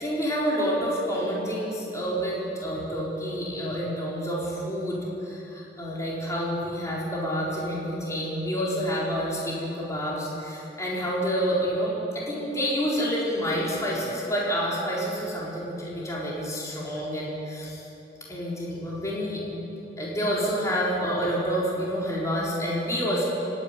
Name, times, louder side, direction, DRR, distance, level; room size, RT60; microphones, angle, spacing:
voice 1, 0.0-17.8 18.3-19.6 20.0-23.2, equal, 20° left, -6 dB, 4.3 m, -28 dB
25.0 x 11.5 x 9.9 m, 2.9 s
head